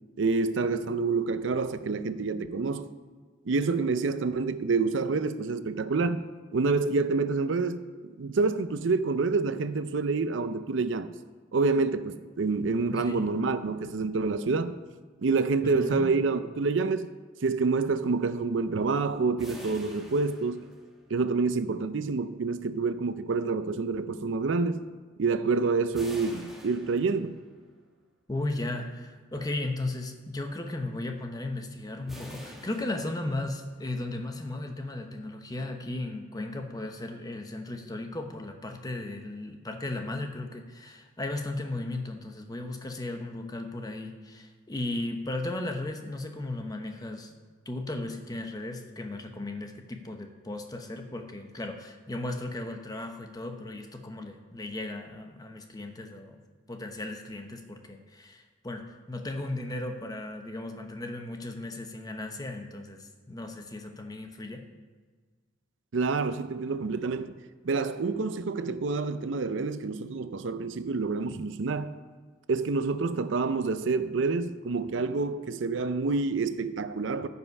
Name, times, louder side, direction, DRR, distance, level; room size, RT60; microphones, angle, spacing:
voice 1, 0.2-2.9 3.5-6.2 6.5-11.1 11.5-14.8 15.2-17.1 17.4-20.7 21.1-24.9 25.2-27.4 65.9-67.4 67.6-71.9 72.5-77.3, right 4 dB, 70° right, 0.5 m, -27 dB
voice 2, 12.9-13.3 15.6-16.2 28.3-47.3 47.7-56.4 56.7-64.6, left 2 dB, 20° left, 0.8 m, -36 dB
sound 1, 19.4-21.3 25.9-27.6 32.1-33.7, equal, ahead, 1.4 m, -46 dB
14.0 x 5.5 x 5.4 m
head